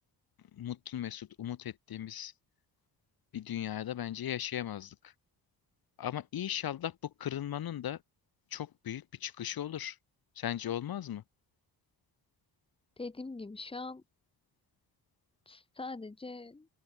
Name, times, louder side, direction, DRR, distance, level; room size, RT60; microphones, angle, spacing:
voice 1, 0.5-2.3 3.3-5.1 6.0-8.0 8.5-10.0 10.4-11.2, left 11 dB, 70° left, 1.4 m, -37 dB
voice 2, 13.0-14.0 15.4-16.7, left 3 dB, 15° left, 1.7 m, -42 dB
open air
wide cardioid pair, 165°, 38 cm